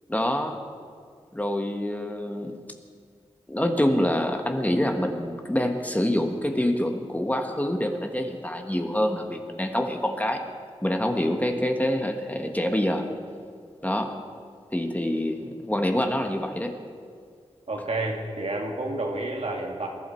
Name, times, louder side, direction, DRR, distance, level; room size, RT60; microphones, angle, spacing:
voice 1, 0.1-0.6 1.3-2.6 3.5-10.4 10.8-13.0 13.8-14.1 14.7-16.7, left 1 dB, 15° left, 4 dB, 1.4 m, -26 dB
voice 2, 17.7-19.9, right 2 dB, 65° right, 1 dB, 2.2 m, -30 dB
21.0 x 11.5 x 4.5 m, 2.1 s
cardioid pair, 55°, 11 cm